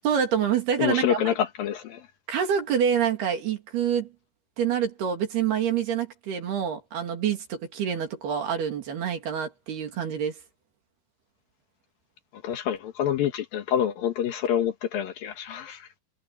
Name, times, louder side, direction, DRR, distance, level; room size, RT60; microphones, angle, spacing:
voice 1, 0.0-1.2 2.3-4.1 4.6-10.4, right 8 dB, 55° right, 4.4 m, -26 dB
voice 2, 0.8-2.0 12.4-15.9, left 9 dB, 65° left, 2.4 m, -27 dB
omnidirectional pair, 5.9 m